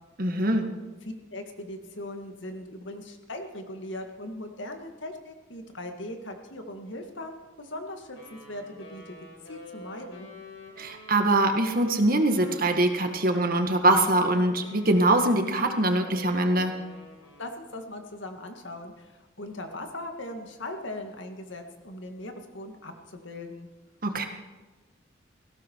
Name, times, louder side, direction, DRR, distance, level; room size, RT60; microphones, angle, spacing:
voice 1, 0.2-0.6 10.8-16.7 24.0-24.3, right 1 dB, 50° right, 5 dB, 1.7 m, -23 dB
voice 2, 1.3-9.2 9.5-10.3 17.4-23.7, left 1 dB, 70° left, 5 dB, 2.0 m, -39 dB
Wind instrument woodwind instrument, 8.1-17.7, left 2 dB, 90° left, 4.5 m, -47 dB
18.5 x 16.5 x 4.6 m, 1.2 s
head